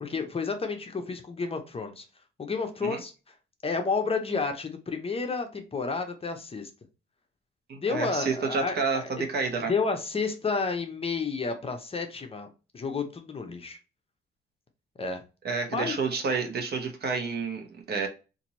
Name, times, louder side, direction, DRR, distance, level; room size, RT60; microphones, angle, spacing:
voice 1, 0.0-2.0 2.4-3.1 3.6-6.7 7.8-9.3 9.5-12.5 12.7-13.8 15.0-15.2 15.7-15.9, left 4 dB, 30° left, 0.7 m, -31 dB
voice 2, 7.7-9.7 15.4-18.1, right 4 dB, 55° right, 1.0 m, -29 dB
2.8 x 2.6 x 4.0 m
cardioid pair, 90°, 20 cm